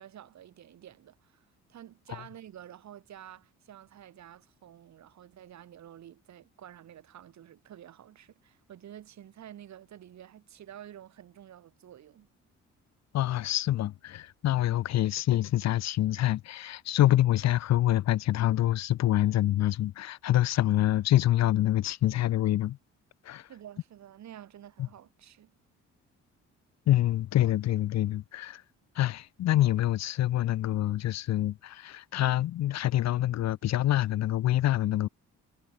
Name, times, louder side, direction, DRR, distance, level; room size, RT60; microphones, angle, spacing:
voice 1, 0.0-12.3 23.5-25.5, right 11 dB, 65° right, 2.5 m, -50 dB
voice 2, 13.1-22.8 23.3-23.5 26.9-28.6 29.0-35.1, left 13 dB, 60° left, 0.6 m, -26 dB
cardioid pair, 90°, 30 cm